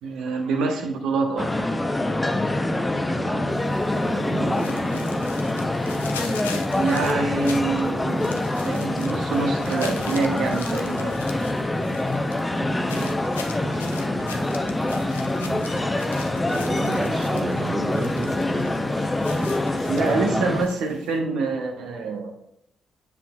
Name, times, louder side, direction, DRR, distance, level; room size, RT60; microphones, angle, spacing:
voice 1, 0.0-1.5 6.7-8.4 8.6-11.1 19.9-22.3, right 3 dB, 70° right, 4 dB, 0.9 m, -26 dB
sound 1, 1.4-20.6, left 1 dB, 15° left, 0.6 m, -25 dB
voice 2, 3.1-3.6 3.9-5.2 12.5-13.2 13.6-14.5 15.4-15.7 16.5-18.9, right 3 dB, 40° right, 4 dB, 1.1 m, -33 dB
sound 2, 3.5-21.2, left 6 dB, 90° left, 0.4 m, -42 dB
7.3 x 5.9 x 2.3 m, 0.76 s
hypercardioid pair, 40°, 0 cm